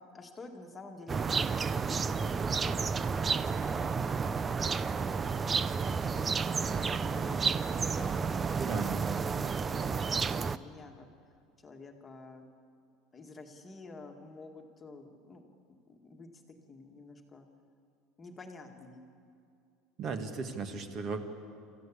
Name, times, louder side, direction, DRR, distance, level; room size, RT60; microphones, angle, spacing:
voice 1, 0.0-2.9 3.2-5.5 6.1-7.4 7.7-8.9 9.2-11.1 11.6-12.5 13.1-15.4 15.8-16.4 16.7-17.5 18.2-19.0, left 3 dB, 15° left, 3 dB, 1.8 m, -50 dB
sound 1, 1.1-10.6, right 5 dB, 20° right, 0.5 m, -31 dB
voice 2, 8.6-9.0 20.0-21.2, right 5 dB, 35° right, 7 dB, 1.8 m, -36 dB
28.5 x 14.5 x 8.6 m, 2.5 s
cardioid pair, 165°, 0 cm